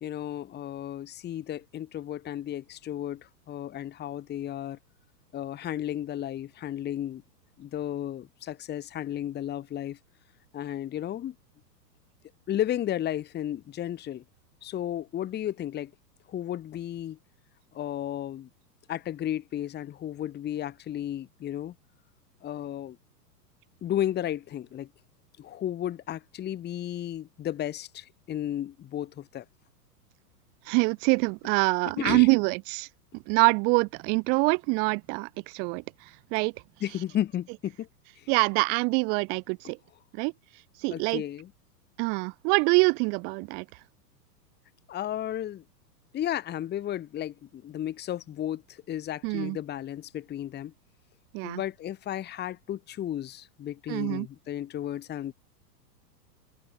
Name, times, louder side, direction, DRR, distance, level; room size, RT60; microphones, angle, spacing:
voice 1, 0.0-4.8 5.3-7.2 7.6-10.0 10.5-11.3 12.5-14.2 14.6-15.9 16.3-17.2 17.7-18.5 18.9-21.7 22.4-23.0 23.8-24.9 25.4-29.4 32.0-32.3 36.8-37.9 38.2-38.3 40.9-41.5 44.9-45.6 46.1-50.7 51.4-55.3, left 11 dB, 20° left, 1.4 m, -33 dB
voice 2, 30.7-32.9 33.3-35.8 36.3-36.5 38.3-39.8 40.1-40.3 40.8-41.2 42.0-43.6 49.2-49.6 51.3-51.6 53.9-54.3, right 32 dB, 20° right, 0.4 m, -25 dB
hypercardioid pair, 115°, 49 cm